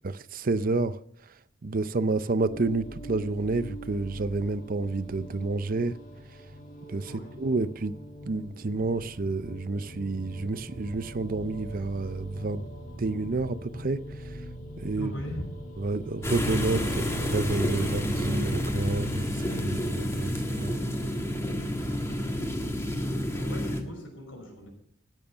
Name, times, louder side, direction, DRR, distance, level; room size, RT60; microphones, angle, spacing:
voice 1, 0.0-1.0 1.6-6.0 6.9-8.0 8.3-12.6 13.0-14.0 14.8-15.1 15.8-20.7, right 3 dB, 45° right, 0.5 m, -29 dB
sound 1, 2.5-18.3, equal, 45° left, 1.8 m, -43 dB
voice 2, 7.0-7.4 14.9-15.5 23.3-24.7, equal, 80° left, 5.7 m, -38 dB
sound 2, 16.2-23.8, equal, 15° left, 1.6 m, -29 dB
14.5 x 9.2 x 5.6 m
head